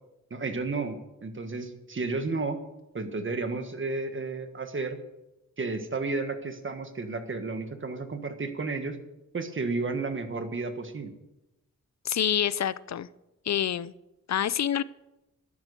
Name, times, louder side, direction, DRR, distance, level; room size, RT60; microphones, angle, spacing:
voice 1, 0.3-2.6 2.9-5.0 5.6-9.0 9.3-11.1, right 3 dB, 40° right, 8 dB, 1.6 m, -32 dB
voice 2, 12.0-13.1 13.5-13.9 14.3-14.8, left 9 dB, 60° left, 18 dB, 0.6 m, -27 dB
13.0 x 10.5 x 7.0 m, 0.96 s
wide cardioid pair, 110°, 31 cm